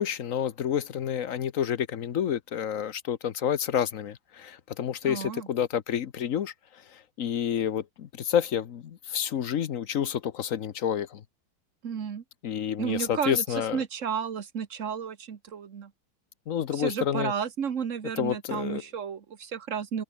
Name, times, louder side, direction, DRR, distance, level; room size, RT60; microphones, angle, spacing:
voice 1, 0.0-11.2 12.4-13.8 16.5-17.3 18.2-18.8, left 9 dB, 55° left, 0.9 m, -29 dB
voice 2, 5.0-5.5 11.8-12.2 12.8-13.4 13.7-15.9 16.7-20.0, right 7 dB, 40° right, 1.3 m, -32 dB
omnidirectional pair, 2.3 m